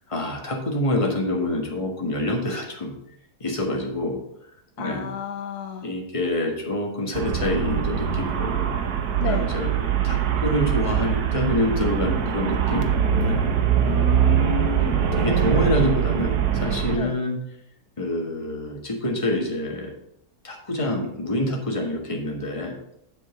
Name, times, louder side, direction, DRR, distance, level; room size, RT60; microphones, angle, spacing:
voice 1, 0.1-3.0 3.4-4.2 4.8-5.1 5.8-8.7 9.2-9.7 10.0-12.9 13.2-13.5 14.8-17.4 18.0-19.9 20.4-22.8, left 1 dB, 20° left, 1 dB, 1.5 m, -26 dB
voice 2, 4.8-5.9 9.2-9.5 13.8-15.1 16.9-17.2, left 6 dB, 75° left, 6 dB, 1.2 m, -31 dB
Traffic noise roadway noise, 7.1-17.0, right 9 dB, 70° right, 1.3 m, -23 dB
8.0 x 4.2 x 6.8 m, 0.76 s
omnidirectional pair, 1.7 m